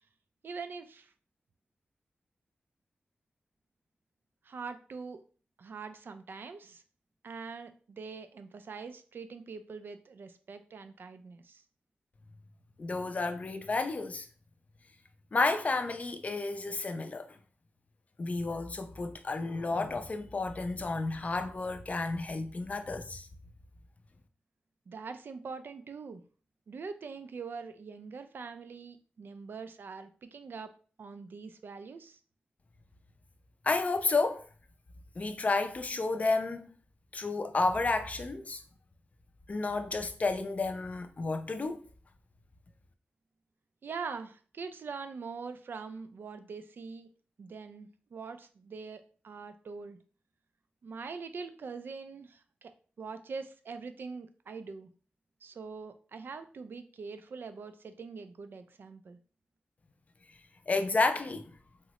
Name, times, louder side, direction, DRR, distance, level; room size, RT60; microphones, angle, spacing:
voice 1, 0.4-1.1 4.4-5.2 5.6-6.8 7.2-11.6 24.9-26.2 26.7-30.7 31.0-32.2 43.8-47.1 47.4-50.0 50.8-52.7 53.0-54.9 55.4-59.2, right 5 dB, 70° right, 0.3 m, -43 dB
voice 2, 12.8-14.3 15.3-17.3 18.2-23.3 33.6-34.4 35.2-36.6 37.1-38.6 39.5-41.9 60.7-61.5, left 3 dB, 40° left, 0.4 m, -31 dB
3.6 x 2.0 x 2.9 m
wide cardioid pair, 95°, 4 cm